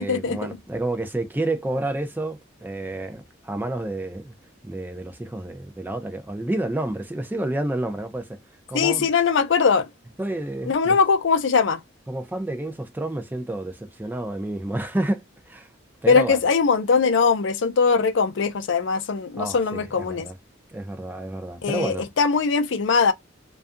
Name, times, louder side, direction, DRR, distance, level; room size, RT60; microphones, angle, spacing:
voice 1, 0.0-4.3 4.6-8.4 8.7-9.1 10.2-11.0 12.1-15.7 16.0-16.4 19.3-20.4 20.7-22.0, right 1 dB, 10° right, 0.4 m, -29 dB
voice 2, 8.7-9.9 10.7-11.8 16.1-20.3 21.6-23.1, left 5 dB, 65° left, 0.4 m, -21 dB
2.6 x 2.3 x 2.4 m
head